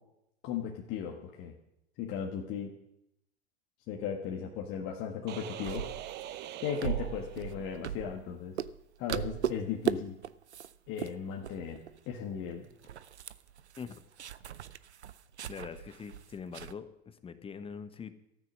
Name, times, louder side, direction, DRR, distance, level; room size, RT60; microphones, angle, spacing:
voice 1, 0.4-1.5 2.0-2.7 3.9-5.9 6.6-8.6 9.0-10.1 10.9-12.6, left 8 dB, 40° left, 0 dB, 1.7 m, -36 dB
sound 1, 5.3-7.9, right 12 dB, 30° right, 0.7 m, -43 dB
sound 2, 5.6-8.3 8.6-8.8 9.1-9.9 10.2-10.7 11.0-11.1 11.4-12.0 12.3-12.4 12.7-16.7, right 9 dB, 85° right, 0.6 m, -37 dB
voice 2, 15.5-18.1, left 6 dB, 15° left, 11 dB, 1.0 m, -43 dB
13.5 x 9.1 x 6.3 m, 0.84 s
hypercardioid pair, 100°, 33 cm